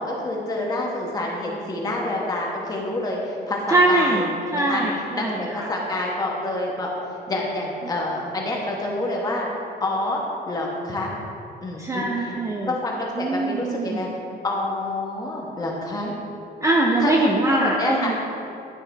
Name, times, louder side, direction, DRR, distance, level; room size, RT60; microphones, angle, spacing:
voice 1, 0.0-4.8 5.1-6.9 7.3-9.5 9.8-11.1 11.6-12.3 12.6-14.1 14.4-16.1 17.0-17.3 17.6-18.1, left 2 dB, 20° left, -2 dB, 1.1 m, -27 dB
voice 2, 3.7-5.7 11.8-12.7 13.2-14.0 16.6-18.2, right 2 dB, 20° right, 0 dB, 0.4 m, -22 dB
11.0 x 4.7 x 3.4 m, 2.6 s
cardioid pair, 175°, 17 cm